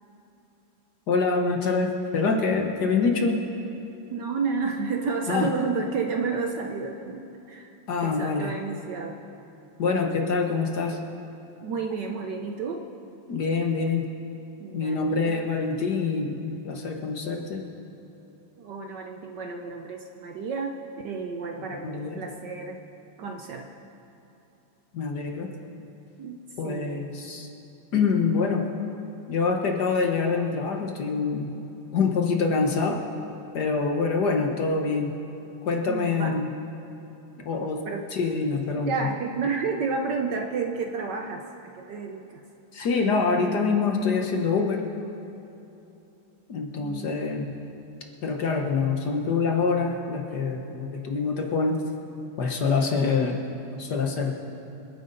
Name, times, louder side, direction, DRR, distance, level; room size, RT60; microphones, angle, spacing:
voice 1, 1.1-3.4 5.3-5.5 7.9-8.5 9.8-11.0 13.3-14.1 14.7-17.6 21.8-22.2 24.9-25.5 26.6-27.5 27.9-28.7 29.3-31.5 31.9-33.0 33.5-35.2 35.6-36.5 37.4-37.8 38.1-39.1 42.7-44.8 46.5-47.5 48.2-51.8 52.4-53.4 53.8-54.3, left 4 dB, 55° left, 2 dB, 1.5 m, -25 dB
voice 2, 4.1-7.7 8.0-9.2 11.6-12.9 14.6-15.4 18.6-20.8 21.0-22.8 23.2-23.7 26.2-27.0 35.9-36.4 37.8-38.1 38.8-42.4 46.8-47.1, right 4 dB, 65° right, 3 dB, 1.2 m, -31 dB
27.5 x 9.5 x 4.0 m, 2.9 s
omnidirectional pair, 2.4 m